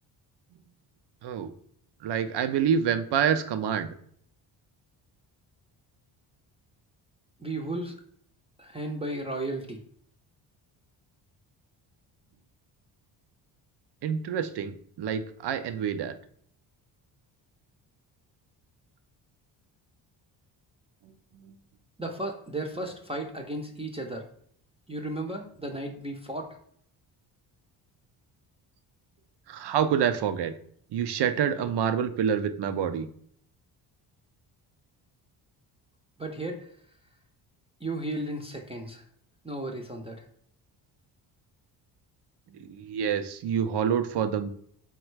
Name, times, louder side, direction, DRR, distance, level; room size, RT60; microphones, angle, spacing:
voice 1, 1.2-1.5 2.0-3.9 14.0-16.1 21.3-21.5 29.5-30.5 30.9-33.1 42.6-44.5, right 8 dB, 55° right, 10 dB, 0.5 m, -27 dB
voice 2, 7.4-7.9 8.6-9.8 22.0-24.3 24.9-26.6 36.2-36.7 37.8-39.0 39.4-40.2, right 1 dB, 10° right, 1 dB, 0.6 m, -34 dB
3.8 x 2.2 x 4.5 m, 0.62 s
supercardioid pair, 55°, 50 cm